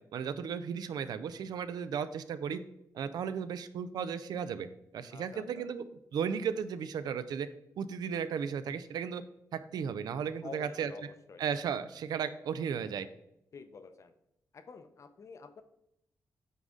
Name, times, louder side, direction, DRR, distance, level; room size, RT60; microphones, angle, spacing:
voice 1, 0.1-2.6 2.9-4.7 4.9-5.8 6.1-7.5 7.8-9.2 9.5-10.9 11.4-13.1, right 7 dB, 85° right, 12 dB, 0.4 m, -35 dB
voice 2, 5.1-5.6 10.4-11.0 11.3-11.4 13.5-14.1 14.5-15.6, left 4 dB, 50° left, 9 dB, 0.6 m, -48 dB
8.1 x 4.0 x 3.7 m, 0.82 s
cardioid pair, 110°, 7 cm